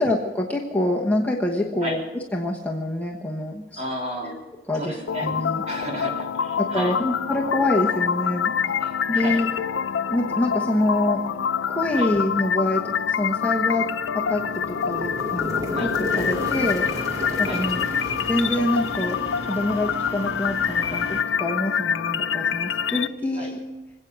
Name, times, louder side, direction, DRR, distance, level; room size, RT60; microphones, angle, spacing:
voice 1, 0.0-3.8 4.2-4.4 4.7-5.6 6.6-8.8 9.1-9.5 10.1-11.2 11.7-16.9 17.4-17.8 18.2-23.6, left 1 dB, 10° left, -1 dB, 1.2 m, -26 dB
voice 2, 3.8-4.3 4.7-5.3 5.7-7.0 8.8-9.4 11.9-12.1 15.7-15.9 17.4-17.6 23.4-23.5, equal, 35° right, -1 dB, 3.5 m, -32 dB
sound 1, 5.1-23.1, left 7 dB, 85° left, 0.5 m, -26 dB
sound 2, 14.0-20.0, left 1 dB, 20° right, 2.1 m, -33 dB
sound 3, 16.1-21.2, left 1 dB, 30° left, 2.5 m, -37 dB
26.0 x 8.6 x 6.2 m, 1.1 s
head